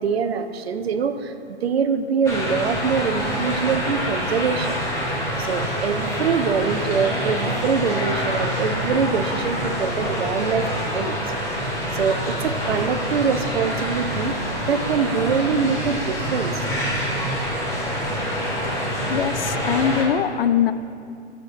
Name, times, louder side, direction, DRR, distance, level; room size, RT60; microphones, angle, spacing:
voice 1, 0.0-4.8 5.4-11.3 11.9-14.4 14.7-16.7, right 6 dB, 60° right, 9 dB, 0.9 m, -24 dB
sound 1, 2.2-20.0, equal, 10° left, 2.6 m, -26 dB
voice 2, 19.1-20.7, left 8 dB, 55° left, 12 dB, 0.6 m, -22 dB
22.0 x 8.2 x 2.6 m, 2.5 s
figure-of-eight pair, 125°, 35 cm